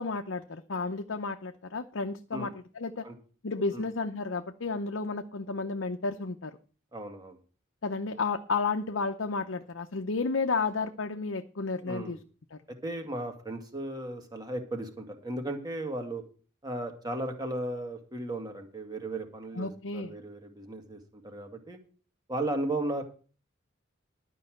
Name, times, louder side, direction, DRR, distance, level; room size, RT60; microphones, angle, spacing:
voice 1, 0.0-2.5 2.8-3.1 3.4-6.6 7.8-12.2 12.5-12.6 19.6-20.1, left 4 dB, 75° left, 6 dB, 0.8 m, -32 dB
voice 2, 6.9-7.4 11.8-12.2 12.8-16.2 16.6-21.8 22.3-23.0, right 1 dB, 20° right, 4 dB, 1.9 m, -35 dB
12.0 x 5.5 x 7.7 m, 0.39 s
head